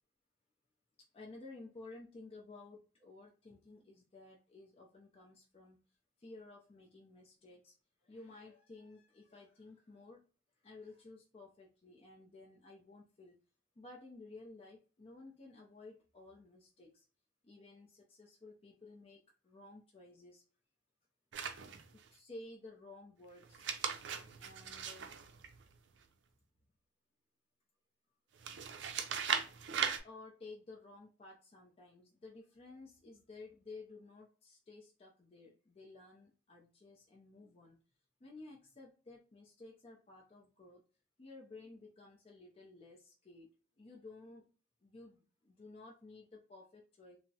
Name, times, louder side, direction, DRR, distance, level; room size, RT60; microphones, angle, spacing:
voice 1, 1.1-5.8 6.2-7.7 8.0-10.2 10.6-13.4 13.8-17.1 17.4-20.4 21.9-23.9 24.4-25.2 30.0-37.8 38.2-40.8 41.2-43.5 43.8-44.4 44.8-47.2, left 2 dB, 30° left, -1 dB, 0.5 m, -54 dB
sound 1, 21.3-22.1 23.4-26.0 28.4-30.0, right 7 dB, 70° right, 0.4 m, -38 dB
3.3 x 2.0 x 2.7 m, 0.36 s
head